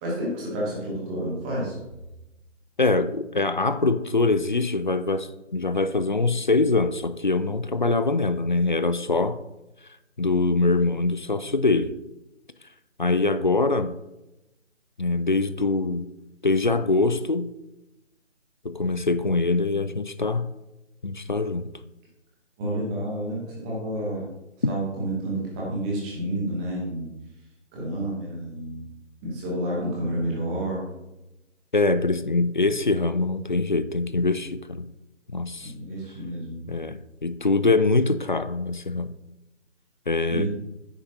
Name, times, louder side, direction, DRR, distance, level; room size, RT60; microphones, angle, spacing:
voice 1, 0.0-1.8 22.6-24.2 24.7-27.1 27.7-28.8 29.2-30.9 35.6-36.6 40.3-40.5, right 1 dB, 5° right, -4 dB, 1.0 m, -29 dB
voice 2, 2.8-9.4 10.2-11.9 13.0-14.0 15.0-16.1 16.4-17.5 18.6-20.5 21.0-21.7 24.6-24.7 31.7-34.9 35.3-35.7 36.7-39.1 40.1-40.5, left 3 dB, 40° left, 12 dB, 0.4 m, -23 dB
9.9 x 9.7 x 2.8 m, 0.97 s
figure-of-eight pair, 155°, 37 cm